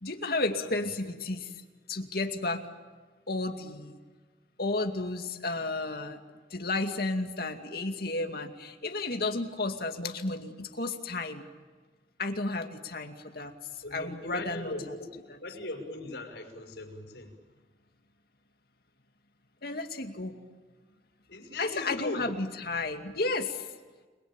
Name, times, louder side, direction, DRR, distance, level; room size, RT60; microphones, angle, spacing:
voice 1, 0.0-1.5 1.9-2.6 3.3-4.0 4.6-6.2 6.5-11.4 12.2-13.5 13.9-14.7 19.6-20.4 21.6-23.7, left 2 dB, 60° left, 4 dB, 2.4 m, -32 dB
voice 2, 13.8-15.1 15.4-17.4 21.3-22.3, left 2 dB, 75° left, 4 dB, 6.0 m, -38 dB
29.0 x 22.0 x 9.0 m, 1.4 s
head